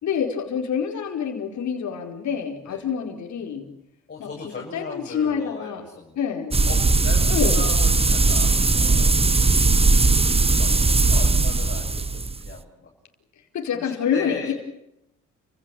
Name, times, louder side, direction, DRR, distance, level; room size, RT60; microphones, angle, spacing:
voice 1, 0.0-3.7 4.2-4.3 4.7-5.8 6.2-6.6 7.3-7.7 13.5-14.5, left 7 dB, 70° left, 2 dB, 4.8 m, -27 dB
voice 2, 4.1-6.3 6.7-10.0 10.4-12.9 13.7-14.5, left 4 dB, 35° left, -2 dB, 7.0 m, -38 dB
sound 1, 6.5-12.5, right 3 dB, 20° right, 1.3 m, -19 dB
30.0 x 16.5 x 9.2 m, 0.82 s
cardioid pair, 90°, 30 cm